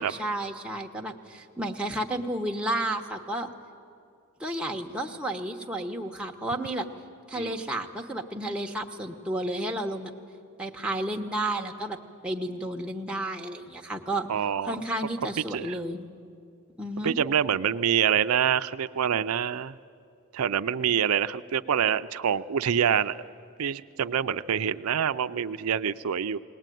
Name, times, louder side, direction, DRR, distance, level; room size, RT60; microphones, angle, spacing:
voice 1, 0.0-3.5 4.4-6.9 7.3-10.1 10.6-12.0 12.2-14.3 14.6-16.1 16.8-17.1, right 1 dB, 5° right, 1 dB, 1.0 m, -32 dB
voice 2, 14.3-14.8 15.5-15.8 17.0-19.7 20.3-23.2 23.6-26.4, right 8 dB, 85° right, 11 dB, 0.5 m, -26 dB
20.0 x 19.5 x 9.2 m, 2.4 s
head